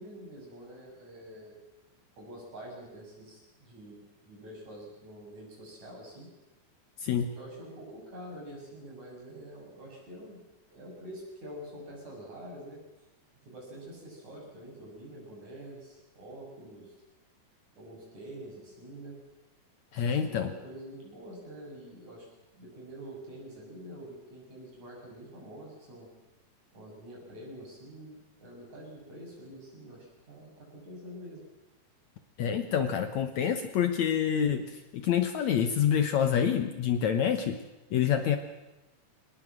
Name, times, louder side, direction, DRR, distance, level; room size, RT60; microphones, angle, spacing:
voice 1, 0.0-1.6 2.2-6.3 7.4-10.4 10.7-12.8 13.5-16.9 17.7-19.2 20.0-22.3 22.5-26.1 26.7-31.4, right 1 dB, 55° right, -1 dB, 8.8 m, -46 dB
voice 2, 19.9-20.5 32.4-37.6 37.9-38.4, left 8 dB, 65° left, 8 dB, 2.1 m, -27 dB
23.5 x 19.5 x 7.6 m, 1.0 s
omnidirectional pair, 4.0 m